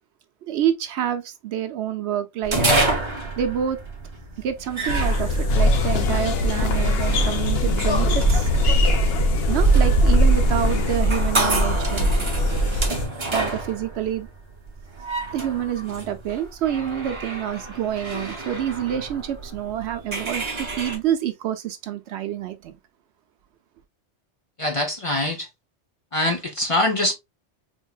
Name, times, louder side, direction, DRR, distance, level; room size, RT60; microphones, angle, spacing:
voice 1, 0.4-2.6 3.4-3.8 4.4-8.5 9.5-12.1 13.3-14.3 15.3-22.7, right 10 dB, 70° right, 0.8 m, -27 dB
sound 1, 2.4-21.0, right 3 dB, 25° right, 0.9 m, -26 dB
sound 2, 4.9-13.0, equal, 80° left, 1.2 m, -23 dB
sound 3, 5.5-11.0, left 4 dB, 60° left, 0.9 m, -26 dB
voice 2, 24.6-25.5 26.1-27.1, left 1 dB, 35° left, 0.7 m, -23 dB
4.5 x 2.8 x 2.3 m
omnidirectional pair, 1.2 m